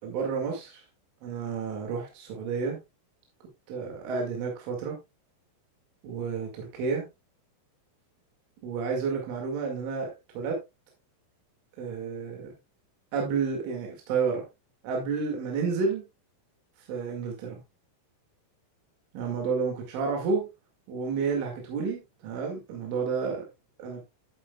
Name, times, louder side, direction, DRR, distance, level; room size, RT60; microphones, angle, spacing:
voice 1, 0.0-0.8 1.2-2.8 3.7-5.0 6.0-7.1 8.6-10.1 10.3-10.6 11.8-12.5 13.1-14.4 14.8-16.0 16.9-17.6 19.1-20.5 20.9-23.5 23.8-24.0, right 5 dB, 75° right, 1 dB, 4.6 m, -30 dB
12.5 x 8.7 x 2.3 m, 0.22 s
omnidirectional pair, 5.8 m